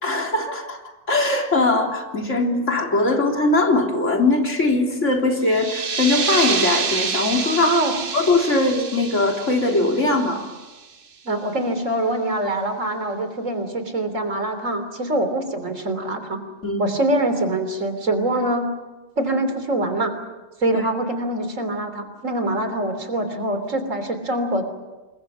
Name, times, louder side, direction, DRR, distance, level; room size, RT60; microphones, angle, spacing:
voice 1, 0.0-0.8 1.1-7.8 8.1-10.5 16.6-16.8 20.7-20.8, left 2 dB, 70° left, 1 dB, 3.8 m, -20 dB
sound 1, 5.4-10.8, right 5 dB, 45° right, 1.1 m, -27 dB
voice 2, 7.6-7.9 11.3-16.4 16.8-18.7 19.2-20.1 20.6-24.6, right 1 dB, 80° right, 8 dB, 3.6 m, -24 dB
28.0 x 22.0 x 7.2 m, 1.2 s
omnidirectional pair, 1.3 m